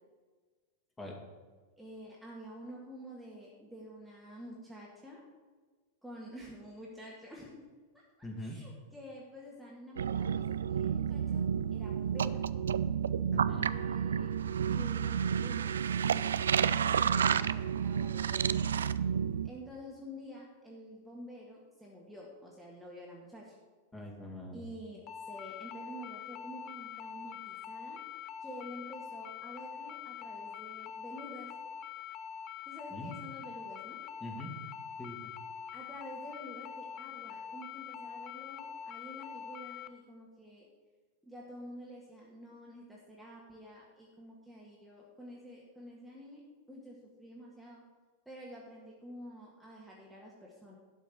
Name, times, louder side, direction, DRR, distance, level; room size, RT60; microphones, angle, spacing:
voice 1, 1.8-5.2 6.0-7.7 7.9-8.0 8.4-10.4 10.7-11.4 11.7-12.5 13.6-14.3 14.7-18.7 19.4-23.6 24.5-28.0 28.4-31.5 32.7-34.0 35.7-40.7 41.2-46.4 46.7-47.8 48.3-50.7, equal, 5° right, -4 dB, 1.8 m, -49 dB
voice 2, 8.2-8.6 13.3-13.7 23.9-24.6 32.9-33.1 34.2-34.5 35.0-35.3, left 1 dB, 15° left, 0 dB, 2.5 m, -42 dB
sound 1, 10.0-19.5, right 8 dB, 65° right, 0.3 m, -30 dB
sound 2, 25.1-39.9, left 8 dB, 35° left, 0.6 m, -44 dB
11.5 x 5.2 x 8.2 m, 1.4 s
figure-of-eight pair, 90°, 0 cm